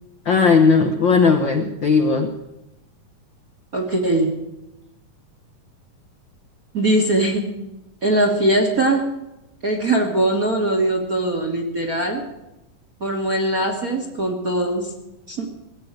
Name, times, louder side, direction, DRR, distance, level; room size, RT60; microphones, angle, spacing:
voice 1, 0.2-2.3, left 5 dB, 70° left, 5 dB, 1.1 m, -16 dB
voice 2, 3.7-4.3 6.7-7.6 8.0-9.1 9.6-12.2 13.0-14.9 15.3-15.5, right 1 dB, 40° right, 3 dB, 1.3 m, -21 dB
18.0 x 7.9 x 8.9 m, 0.91 s
omnidirectional pair, 3.7 m